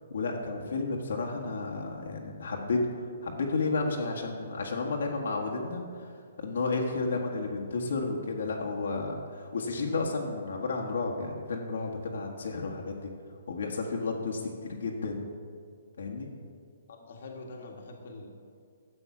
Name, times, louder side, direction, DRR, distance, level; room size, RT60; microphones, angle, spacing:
voice 1, 0.1-13.1 13.5-15.2 16.0-16.3, left 3 dB, 65° left, 0 dB, 1.4 m, -32 dB
voice 2, 16.9-18.4, left 2 dB, 45° left, 2 dB, 1.5 m, -45 dB
12.5 x 7.9 x 6.0 m, 2.2 s
hypercardioid pair, 180°, 0 cm